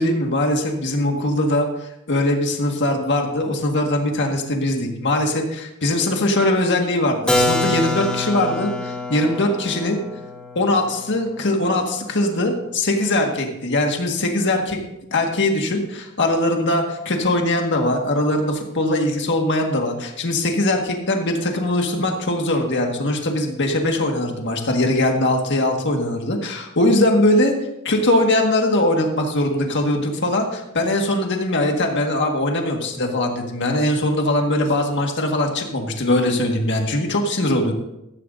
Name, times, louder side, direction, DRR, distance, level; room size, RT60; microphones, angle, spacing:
voice 1, 0.0-10.0 10.5-14.8 15.1-37.7, left 1 dB, 55° left, 2 dB, 1.7 m, -21 dB
Keyboard (musical), 7.3-12.9, left 1 dB, 5° left, 1.2 m, -26 dB
14.0 x 13.5 x 2.6 m, 0.88 s
head